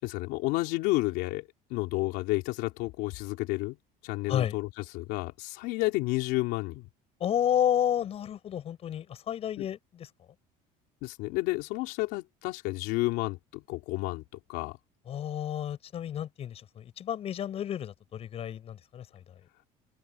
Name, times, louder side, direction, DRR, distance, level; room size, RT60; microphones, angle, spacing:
voice 1, 0.0-3.8 4.0-6.9 9.6-9.7 11.0-14.2 14.5-14.8, left 21 dB, 75° left, 3.5 m, -31 dB
voice 2, 7.2-10.1 15.1-19.2, left 10 dB, 35° left, 6.8 m, -31 dB
cardioid pair, 155°, 17 cm